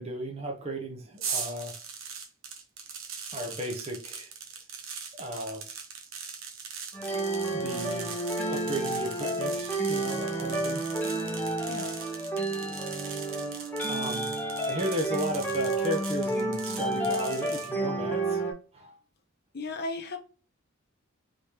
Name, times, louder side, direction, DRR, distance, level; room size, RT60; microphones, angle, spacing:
voice 1, 0.0-1.7 3.3-4.3 5.1-5.6 7.5-10.9 11.2-11.3 13.9-14.4 14.6-18.4 18.7-18.9, right 1 dB, 30° right, 0.7 m, -35 dB
sound 1, 1.2-17.7, right 6 dB, 70° right, 0.9 m, -40 dB
sound 2, 6.9-18.5, right 2 dB, 10° left, 0.7 m, -31 dB
voice 2, 19.5-20.2, left 2 dB, 50° left, 0.7 m, -35 dB
3.3 x 3.3 x 2.8 m
head